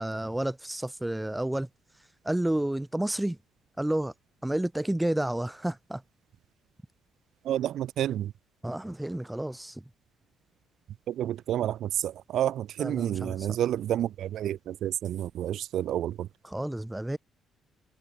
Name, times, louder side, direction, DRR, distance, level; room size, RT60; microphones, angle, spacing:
voice 1, 0.0-1.7 2.2-3.4 3.8-4.1 4.4-6.0 8.6-9.8 12.8-13.6 16.4-17.2, right 1 dB, 5° right, 2.5 m, -30 dB
voice 2, 7.4-8.3 11.1-16.3, right 11 dB, 75° right, 1.0 m, -30 dB
cardioid pair, 110°, 0 cm